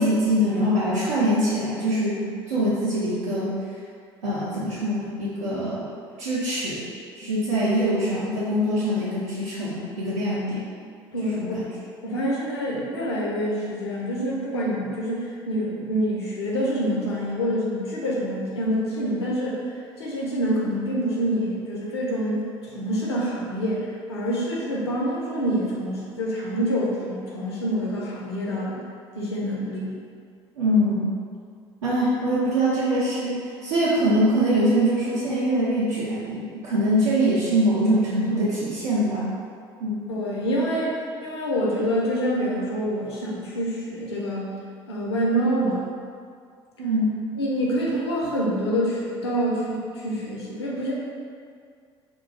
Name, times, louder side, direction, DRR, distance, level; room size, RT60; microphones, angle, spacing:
voice 1, 0.0-3.5 4.2-5.9 6.2-6.8 7.1-10.7 11.3-11.6 30.6-31.1 31.8-39.3 39.8-40.1 46.8-47.2, equal, 85° right, -12 dB, 0.6 m, -23 dB
voice 2, 11.1-11.7 12.0-22.4 22.7-28.8 29.1-30.0 40.1-44.5 44.9-45.9 47.4-50.9, equal, 85° left, -5 dB, 0.6 m, -26 dB
2.4 x 2.2 x 3.8 m, 2.2 s
hypercardioid pair, 65°, 14 cm